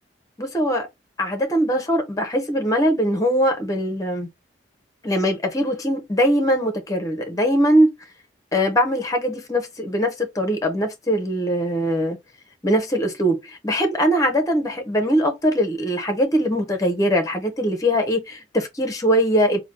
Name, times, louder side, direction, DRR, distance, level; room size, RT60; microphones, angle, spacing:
voice 1, 0.4-0.9 1.2-4.3 5.0-7.9 8.5-12.2 12.6-19.6, equal, 20° left, 0.7 m, -21 dB
3.3 x 2.2 x 3.2 m
head